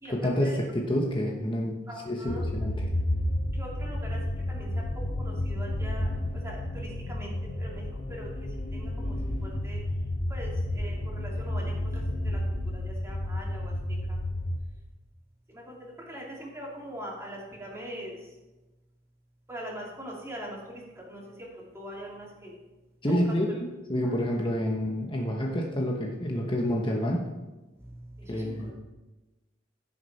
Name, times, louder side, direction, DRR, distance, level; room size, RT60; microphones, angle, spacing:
voice 1, 0.1-1.8 2.0-2.9 23.0-27.3 28.3-28.7, equal, 30° left, -1 dB, 1.1 m, -28 dB
voice 2, 1.9-2.4 3.6-4.2 4.5-4.7 5.2-6.1 6.4-8.3 8.7-9.2 9.6-9.8 10.3-12.4 12.7-14.2 15.5-18.2 19.5-21.2 21.7-22.5 23.1-23.2 24.0-24.2 27.8-27.9 28.3-28.7, equal, 15° right, -3 dB, 2.7 m, -42 dB
sound 1, 2.3-14.6, left 1 dB, 65° left, 1.2 m, -31 dB
16.0 x 6.4 x 4.2 m, 1.1 s
head